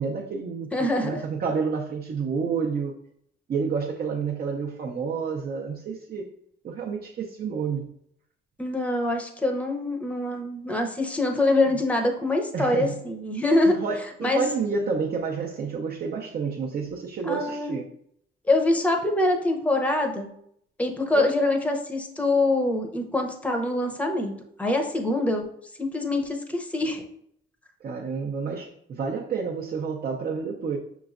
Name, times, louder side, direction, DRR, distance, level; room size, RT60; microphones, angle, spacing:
voice 1, 0.0-0.7 1.0-2.9 3.5-6.3 6.6-7.8 11.7-11.8 12.5-13.0 13.6-17.9 21.1-21.3 27.8-30.8, right 5 dB, 50° right, -1 dB, 0.6 m, -29 dB
voice 2, 0.7-1.1 8.6-13.7 14.2-14.4 17.3-17.7 18.4-20.3 20.8-24.3 24.6-25.5 25.8-27.0, left 2 dB, 5° left, 3 dB, 0.7 m, -24 dB
5.8 x 3.1 x 2.5 m, 0.70 s
cardioid pair, 90°, 20 cm